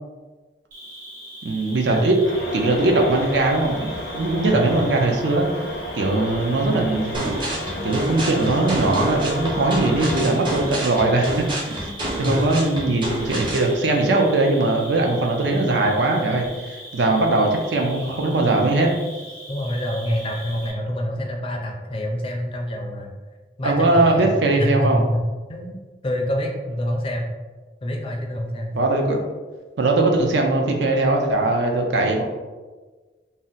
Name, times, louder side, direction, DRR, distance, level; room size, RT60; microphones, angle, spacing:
Cricket, 0.7-20.7, equal, 50° right, 1.4 m, -41 dB
voice 1, 1.4-2.2 2.5-5.6 5.9-7.3 7.8-11.8 12.2-18.9 23.6-25.0 28.7-29.2 29.8-32.2, right 2 dB, 75° right, 2 dB, 0.5 m, -20 dB
sound 1, 2.2-10.3, equal, 85° left, 0.5 m, -32 dB
voice 2, 4.5-4.9 19.5-23.1 23.6-24.3 24.6-25.2 25.5-27.3 27.8-28.7, equal, 30° left, 2 dB, 0.4 m, -26 dB
sound 2, 7.1-13.7, right 1 dB, 25° right, 0.6 m, -28 dB
2.7 x 2.1 x 3.8 m, 1.3 s
head